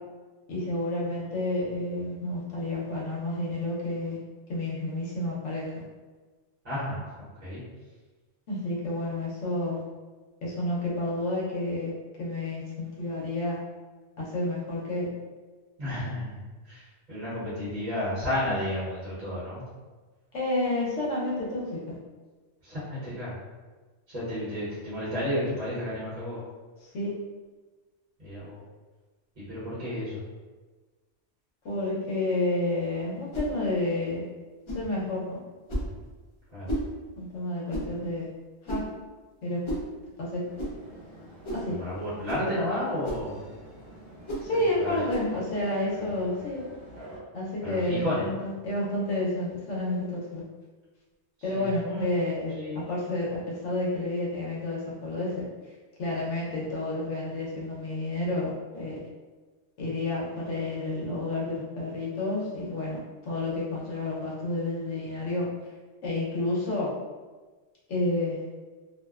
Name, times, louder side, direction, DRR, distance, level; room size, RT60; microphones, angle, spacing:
voice 1, 0.5-4.2 4.5-5.7 8.5-9.8 10.4-11.9 12.2-13.6 14.2-15.1 20.3-22.0 26.9-27.1 31.6-34.2 34.7-35.4 37.2-38.3 38.7-38.8 39.4-39.6 40.2-40.4 41.5-41.7 44.4-46.6 47.3-50.1 50.3-50.4 51.4-52.5 52.9-55.3 56.0-59.0 59.8-65.5 66.0-66.9 67.9-68.4, left 2 dB, 85° left, -5 dB, 1.0 m, -30 dB
voice 2, 6.6-7.6 15.8-19.7 22.6-23.3 24.1-26.4 28.2-28.6 29.4-30.2 36.5-36.7 41.8-43.4 44.4-44.5 44.8-45.0 46.0-46.1 47.6-48.2 51.4-52.0 52.6-52.8, left 1 dB, 40° right, -11 dB, 0.9 m, -32 dB
sound 1, 33.3-33.5 34.7-34.9 35.7-35.9 36.7-36.9 37.7-37.9 38.7-38.9 39.6-39.9 40.6-40.7 41.4-41.7 42.2-42.5 43.0-43.3 44.3-44.5 45.1-45.3, right 1 dB, 45° left, 0.4 m, -32 dB
sound 2, 40.4-47.2, right 1 dB, 70° right, 1.0 m, -48 dB
2.5 x 2.1 x 2.3 m, 1.3 s
omnidirectional pair, 1.2 m